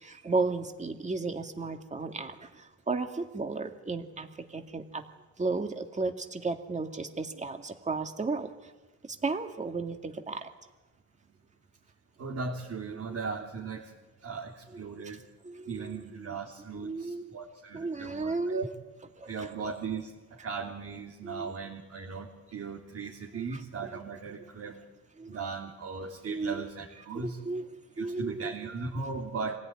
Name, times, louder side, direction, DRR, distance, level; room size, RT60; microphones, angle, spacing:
voice 1, 0.0-5.0 5.4-8.7 9.1-10.5 12.9-13.2 14.7-14.8 15.4-16.4 16.7-17.2 17.7-18.7 19.2-19.5 21.2-21.5 23.3-23.6 25.2-25.4 26.3-26.6 27.1-27.7 28.0-28.5, right 3 dB, 25° right, 5 dB, 2.2 m, -34 dB
voice 2, 12.2-13.9 14.2-15.2 15.7-18.7 19.3-20.1 20.4-24.8 25.3-27.4 28.0-29.6, right 4 dB, 55° right, -2 dB, 3.2 m, -38 dB
25.5 x 16.5 x 9.8 m, 1.2 s
cardioid pair, 90°, 30 cm